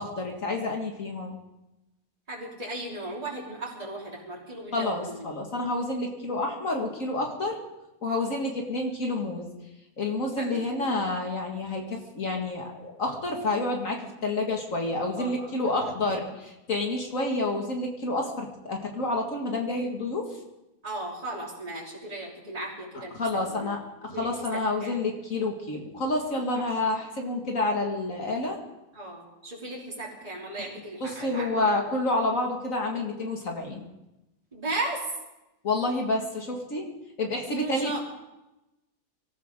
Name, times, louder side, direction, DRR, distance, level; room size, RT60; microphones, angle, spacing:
voice 1, 0.0-1.4 4.7-7.6 8.0-9.5 10.0-20.3 23.1-28.6 31.0-33.9 35.6-36.9 37.2-38.0, left 2 dB, 65° left, 1 dB, 2.4 m, -29 dB
voice 2, 2.3-5.2 10.4-10.9 15.2-15.9 20.8-23.1 23.6-23.7 24.1-25.0 26.5-26.8 28.9-31.7 34.5-35.0 37.5-38.0, right 2 dB, 25° right, -5 dB, 3.5 m, -36 dB
25.0 x 14.0 x 3.8 m, 0.95 s
omnidirectional pair, 1.5 m